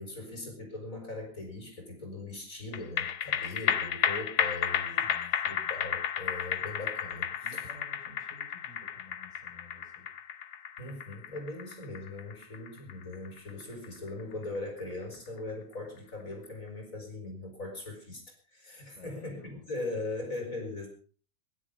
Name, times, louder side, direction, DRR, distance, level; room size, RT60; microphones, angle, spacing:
voice 1, 0.0-5.1 5.5-7.6 10.8-20.9, left 2 dB, 55° left, 3 dB, 5.2 m, -40 dB
sound 1, 2.7-15.4 15.7-15.8, left 9 dB, 85° left, 1.5 m, -33 dB
voice 2, 4.9-5.8 7.4-10.1 18.8-20.0, left 1 dB, 25° right, -1 dB, 6.9 m, -54 dB
21.5 x 11.5 x 5.1 m, 0.40 s
omnidirectional pair, 1.7 m